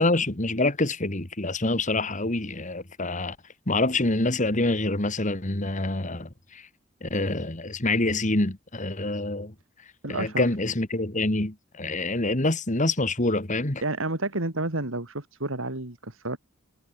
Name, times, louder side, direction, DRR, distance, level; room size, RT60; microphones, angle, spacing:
voice 1, 0.0-3.4 3.7-6.6 7.0-9.5 10.1-13.8, left 2 dB, 40° left, 2.2 m, -26 dB
voice 2, 10.0-10.4 13.8-16.4, right 2 dB, 80° right, 3.5 m, -30 dB
head